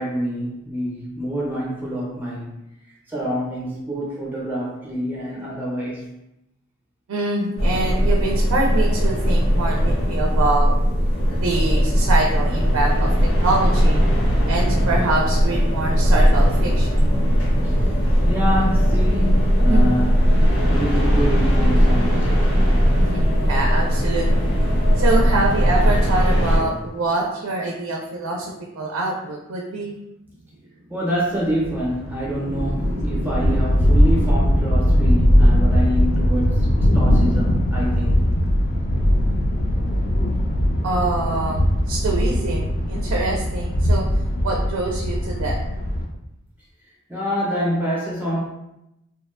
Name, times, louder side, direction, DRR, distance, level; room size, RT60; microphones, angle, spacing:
voice 1, 0.0-2.6 3.1-6.1 17.6-17.7 18.3-22.6 30.9-38.2 47.1-48.4, equal, 10° right, -5 dB, 0.5 m, -26 dB
voice 2, 7.1-10.7 11.3-13.1 13.4-14.0 14.5-17.1 19.7-20.0 23.0-24.5 25.0-30.0 32.4-34.1 40.8-44.0 44.4-45.6, right 2 dB, 80° right, -1 dB, 0.4 m, -25 dB
sound 1, 7.6-26.6, equal, 80° left, 0.8 m, -18 dB
sound 2, 31.5-46.1, equal, 45° left, 0.4 m, -20 dB
2.7 x 2.1 x 2.3 m, 0.88 s
head